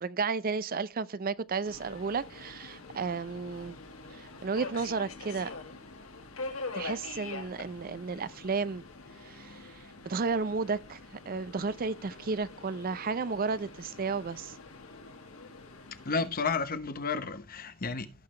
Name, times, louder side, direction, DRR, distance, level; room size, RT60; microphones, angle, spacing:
voice 1, 0.0-3.8 4.1-5.5 6.7-8.8 9.2-11.0 11.3-14.5, right 4 dB, 45° right, 0.5 m, -33 dB
Subway metro underground, 1.7-16.3, left 3 dB, 85° left, 1.9 m, -45 dB
voice 2, 16.1-18.1, left 4 dB, 45° left, 1.0 m, -32 dB
16.5 x 5.7 x 3.2 m
head